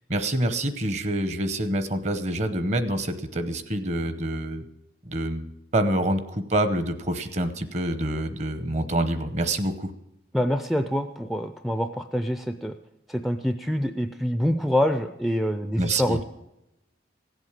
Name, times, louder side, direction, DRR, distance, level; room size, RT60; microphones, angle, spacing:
voice 1, 0.1-4.6 5.0-9.9 15.8-16.2, right 1 dB, 35° right, 10 dB, 0.9 m, -26 dB
voice 2, 10.3-12.8 13.1-16.3, equal, ahead, 8 dB, 0.4 m, -26 dB
16.0 x 8.0 x 7.4 m, 0.89 s
head